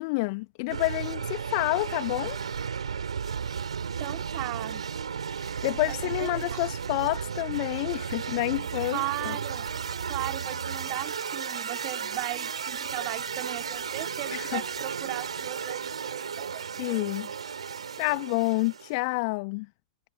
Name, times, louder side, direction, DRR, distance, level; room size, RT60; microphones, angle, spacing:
voice 1, 0.0-2.4 5.4-9.4 14.3-14.6 16.8-17.3 18.0-19.7, left 28 dB, 45° left, 1.7 m, -29 dB
sound 1, 0.7-19.0, right 6 dB, 70° right, 6.3 m, -34 dB
voice 2, 4.0-4.8 5.9-6.6 8.9-9.7 10.1-16.7, right 38 dB, 40° right, 2.5 m, -37 dB
figure-of-eight pair, 95°, 3 cm